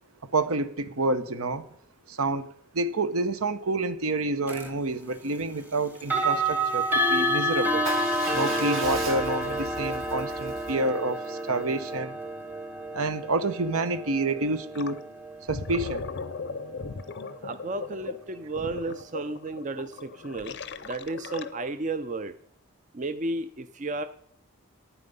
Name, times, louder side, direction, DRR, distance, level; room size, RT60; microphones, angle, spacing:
voice 1, 0.2-1.6 2.1-2.4 2.7-7.9 8.3-12.2 12.9-15.0 15.5-16.1, right 2 dB, 75° right, 11 dB, 0.9 m, -28 dB
sound 1, 4.5-4.7 6.0-16.9, equal, 10° right, 0.9 m, -29 dB
Motorcycle / Engine starting / Idling, 7.8-11.9, right 3 dB, 60° right, 1.8 m, -38 dB
Gurgling, 14.7-15.0 15.3-21.8, left 4 dB, 50° left, 0.6 m, -38 dB
voice 2, 17.4-22.3 22.9-24.1, right 2 dB, 35° right, 10 dB, 0.5 m, -33 dB
11.5 x 9.2 x 5.5 m, 0.69 s
head